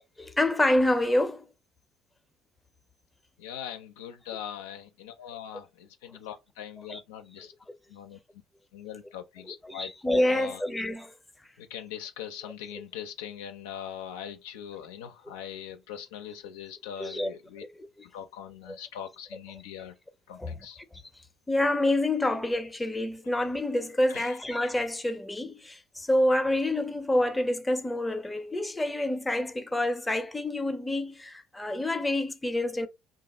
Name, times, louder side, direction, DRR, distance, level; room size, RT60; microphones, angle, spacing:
voice 1, 0.2-1.4 6.9-7.0 9.5-11.1 17.0-17.3 17.6-18.1 18.7-18.8 20.4-20.5 21.5-32.9, left 1 dB, 15° left, 0.6 m, -27 dB
voice 2, 3.4-7.5 7.9-8.2 8.7-9.9 10.3-10.6 11.6-17.6 18.1-20.0 20.3-20.8 24.1-24.4, left 9 dB, 90° left, 0.4 m, -41 dB
2.4 x 2.3 x 4.0 m
supercardioid pair, 70°, 0 cm